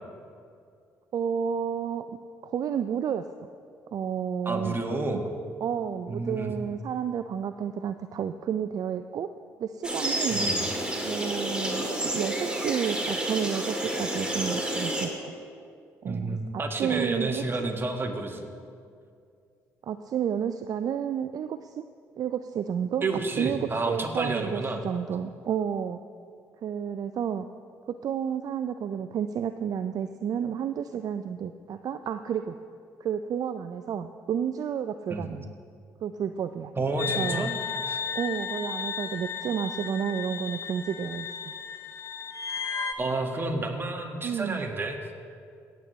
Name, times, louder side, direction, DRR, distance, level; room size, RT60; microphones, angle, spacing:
voice 1, 1.1-2.1 2.4-3.2 3.9-4.8 5.1-5.2 5.6-9.3 9.6-10.5 10.7-15.3 16.0-17.7 19.8-21.9 22.2-23.1 23.4-26.0 26.6-27.5 27.9-32.6 33.0-35.5 36.0-36.7 37.2-37.5 38.1-41.5 44.2-44.7, right 8 dB, 55° right, 9 dB, 0.4 m, -31 dB
voice 2, 4.4-5.2 6.1-6.5 10.3-10.6 16.0-18.4 23.0-24.8 35.1-35.2 36.8-37.5 37.9-38.0 43.0-45.0, right 2 dB, 30° right, 3 dB, 1.7 m, -30 dB
sound 1, 9.8-15.1, right 1 dB, 10° right, 2.0 m, -29 dB
sound 2, 37.0-42.9, left 7 dB, 35° left, 0.9 m, -34 dB
17.0 x 8.2 x 3.2 m, 2.3 s
hypercardioid pair, 55°, 8 cm